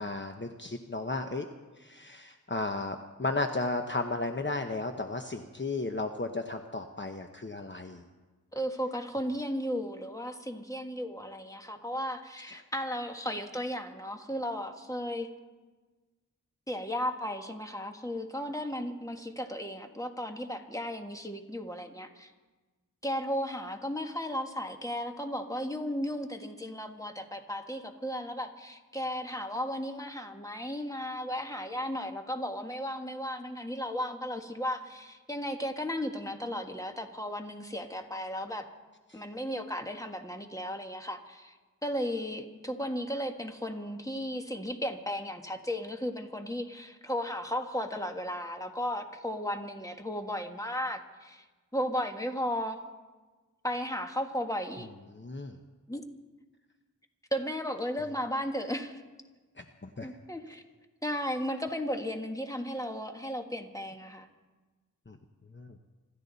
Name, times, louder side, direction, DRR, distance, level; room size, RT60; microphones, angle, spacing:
voice 1, 0.0-1.5 1.8-8.0 12.5-12.6 39.1-39.2 55.1-55.6 59.6-60.1 65.1-65.2 65.5-65.8, left 2 dB, 35° left, 5 dB, 0.9 m, -34 dB
voice 2, 8.5-15.3 16.7-22.3 23.0-38.6 39.1-41.5 41.8-51.4 51.7-52.8 53.6-54.9 55.9-56.0 57.3-59.0 60.0-60.6 61.0-64.3, equal, 10° left, 4 dB, 1.6 m, -35 dB
26.0 x 13.5 x 4.1 m, 1.3 s
wide cardioid pair, 45°, 32 cm